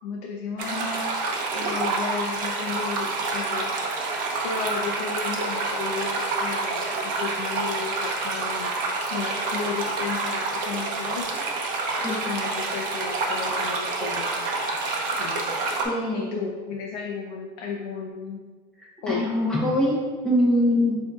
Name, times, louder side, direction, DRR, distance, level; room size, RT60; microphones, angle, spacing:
voice 1, 0.0-3.7 4.4-8.7 9.1-11.4 12.1-14.3 15.0-15.4 16.1-18.4 19.0-19.3, left 5 dB, 85° left, 0 dB, 0.5 m, -33 dB
sound 1, 0.6-15.8, right 3 dB, 45° right, 0.6 m, -28 dB
voice 2, 15.8-16.5 18.8-20.0 20.2-21.0, left 1 dB, 5° left, -6 dB, 0.9 m, -23 dB
7.8 x 2.7 x 2.4 m, 1.5 s
cardioid pair, 175°, 21 cm